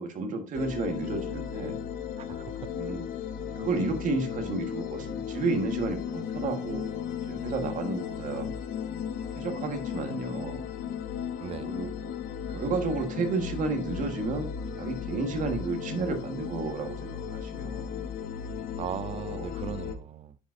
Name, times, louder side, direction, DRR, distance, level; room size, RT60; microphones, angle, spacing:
voice 1, 0.0-1.8 2.7-3.1 3.5-8.5 9.3-10.6 11.6-11.9 12.5-18.1 19.1-19.5, right 3 dB, 65° right, 1.4 m, -32 dB
sound 1, 0.5-20.0, left 8 dB, 75° left, 0.8 m, -35 dB
voice 2, 2.2-2.7 11.4-11.8 18.8-20.4, right 9 dB, 50° right, 0.4 m, -38 dB
9.9 x 4.9 x 2.6 m
supercardioid pair, 80°, 14 cm